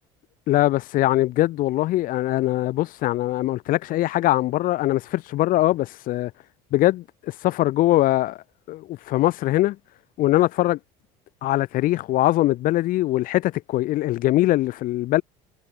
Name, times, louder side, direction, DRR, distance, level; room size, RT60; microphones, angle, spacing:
voice 1, 0.5-6.3 6.7-9.8 10.2-10.8 11.4-15.2, left 16 dB, 60° left, 4.6 m, -22 dB
cardioid pair, 130°, 16 cm